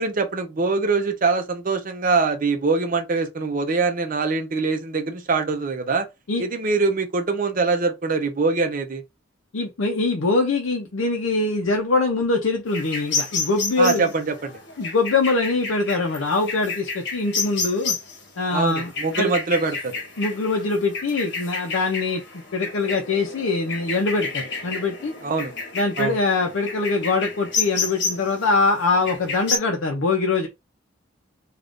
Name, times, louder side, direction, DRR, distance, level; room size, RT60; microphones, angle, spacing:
voice 1, 0.0-6.1 6.4-9.0 13.8-14.6 18.5-20.0 25.2-25.5 26.0-26.2, right 4 dB, 45° right, 0.6 m, -23 dB
voice 2, 9.5-14.1 14.8-18.0 18.4-19.3 20.2-25.1 25.7-30.5, left 3 dB, 80° left, 0.6 m, -23 dB
sound 1, 12.7-29.6, left 4 dB, 60° left, 1.1 m, -31 dB
2.5 x 2.4 x 3.5 m
head